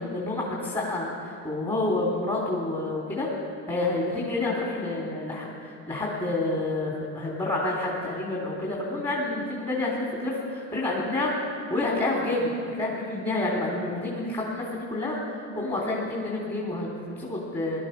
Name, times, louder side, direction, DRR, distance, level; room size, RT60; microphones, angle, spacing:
voice 1, 0.0-3.3 3.7-11.3 11.7-17.8, left 2 dB, 15° left, -5 dB, 3.1 m, -29 dB
17.0 x 12.5 x 5.3 m, 2.4 s
supercardioid pair, 105°, 32 cm